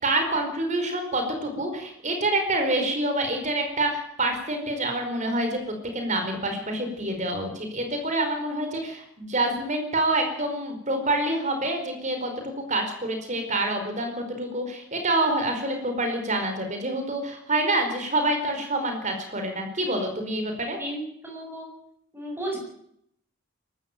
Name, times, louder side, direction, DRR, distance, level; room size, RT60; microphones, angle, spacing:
voice 1, 0.0-20.8, right 2 dB, 35° right, 5 dB, 4.9 m, -27 dB
voice 2, 20.8-21.7 22.1-22.6, right 1 dB, 10° right, 0 dB, 7.8 m, -34 dB
23.0 x 13.5 x 9.1 m, 0.72 s
head